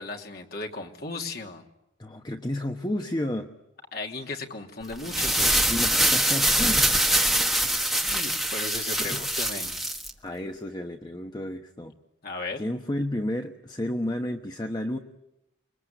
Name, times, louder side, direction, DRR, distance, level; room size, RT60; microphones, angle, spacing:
voice 1, 0.0-1.6 3.9-5.6 8.0-9.8 12.2-12.7, left 3 dB, 55° left, 2 dB, 3.0 m, -36 dB
voice 2, 2.0-3.5 5.7-6.9 9.0-9.3 10.2-11.9 12.6-15.0, left 1 dB, 25° left, 4 dB, 1.1 m, -31 dB
sound 1, 4.9-10.1, right 1 dB, ahead, 1.5 m, -24 dB
29.5 x 21.5 x 9.2 m, 0.87 s
head